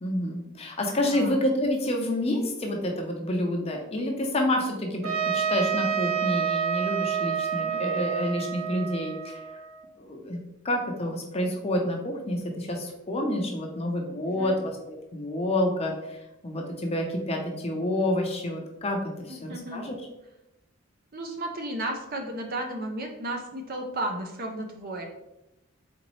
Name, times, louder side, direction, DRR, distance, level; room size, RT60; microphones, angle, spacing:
voice 1, 0.0-9.4 10.0-10.4 10.6-15.9 16.4-19.9, left 1 dB, 30° left, 2 dB, 0.6 m, -28 dB
voice 2, 1.0-1.4 7.6-7.8 14.4-14.6 19.3-19.9 21.1-25.1, right 1 dB, 45° right, 3 dB, 0.5 m, -34 dB
Trumpet, 5.0-9.9, right 7 dB, 85° right, 0.7 m, -29 dB
4.1 x 3.8 x 3.0 m, 0.91 s
head